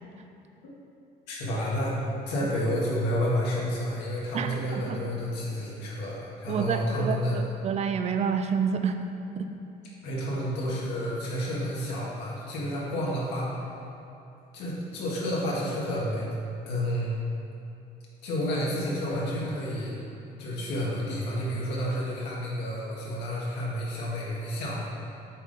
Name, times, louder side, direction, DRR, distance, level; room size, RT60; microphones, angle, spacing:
voice 1, 1.3-7.4 10.0-13.6 14.5-16.3 16.7-17.1 18.2-19.9 20.4-24.9, equal, 90° left, -5 dB, 1.5 m, -30 dB
voice 2, 6.5-9.0 9.4-9.5, right 6 dB, 40° right, 7 dB, 0.4 m, -28 dB
7.4 x 3.7 x 3.9 m, 2.7 s
cardioid pair, 110°, 17 cm